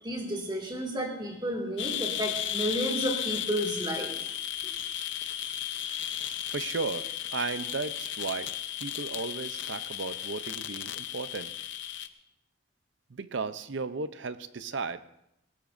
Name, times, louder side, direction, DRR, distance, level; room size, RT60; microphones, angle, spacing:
voice 1, 0.0-4.1, equal, 20° right, 2 dB, 2.2 m, -32 dB
sound 1, 1.8-12.1, left 11 dB, 60° left, 0.7 m, -35 dB
voice 2, 6.5-8.5 8.8-11.5 13.1-15.0, right 4 dB, 60° right, 12 dB, 0.6 m, -35 dB
20.5 x 17.5 x 2.6 m, 0.81 s
head